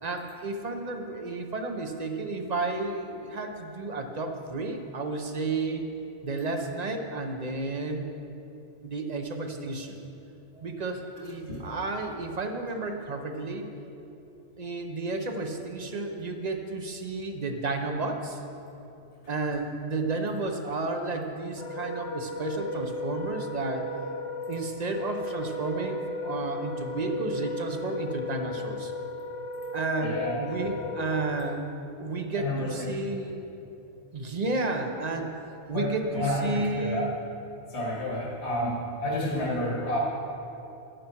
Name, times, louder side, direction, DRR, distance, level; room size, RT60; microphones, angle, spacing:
voice 1, 0.0-5.9 6.2-8.1 8.8-10.0 10.5-13.6 14.6-18.4 19.3-23.9 24.5-28.9 29.7-31.6 32.0-33.4 34.1-35.3 35.7-37.1, right 3 dB, 40° right, 4 dB, 0.9 m, -32 dB
Wind instrument woodwind instrument, 21.5-31.6, left 1 dB, 85° left, 1.2 m, -35 dB
voice 2, 30.0-30.7 32.4-32.9 35.7-37.1 37.7-40.0, left 1 dB, 65° left, -3 dB, 1.9 m, -30 dB
11.5 x 10.0 x 4.5 m, 2.9 s
omnidirectional pair, 1.2 m